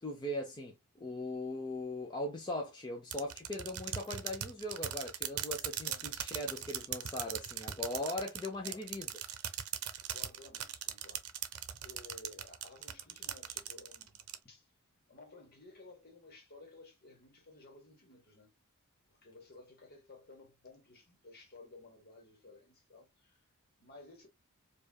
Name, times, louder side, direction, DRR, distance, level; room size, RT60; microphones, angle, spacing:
voice 1, 0.0-9.1, left 1 dB, 20° left, 0.6 m, -39 dB
sound 1, 3.1-14.4, right 10 dB, 75° right, 0.6 m, -39 dB
voice 2, 5.8-6.3 8.6-8.9 10.1-11.2 11.8-14.2 14.5-14.7 15.1-18.5 19.1-23.4 23.8-24.3, left 2 dB, 45° left, 1.3 m, -55 dB
4.8 x 2.4 x 2.3 m
head